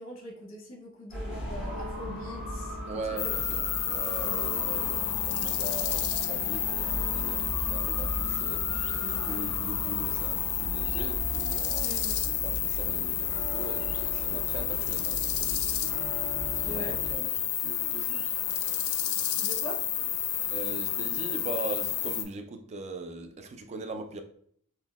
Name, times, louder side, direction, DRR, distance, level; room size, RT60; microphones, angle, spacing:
voice 1, 0.0-2.8 3.2-3.3 11.8-12.3 16.6-17.0 19.4-19.8, equal, 40° left, 0.8 m, -42 dB
sound 1, 1.1-17.1, equal, 5° right, 1.1 m, -38 dB
voice 2, 2.9-16.0 16.5-18.3 20.5-24.2, right 3 dB, 30° right, 0.3 m, -40 dB
sound 2, 3.2-22.2, left 10 dB, 90° left, 0.4 m, -30 dB
3.6 x 2.6 x 2.4 m
head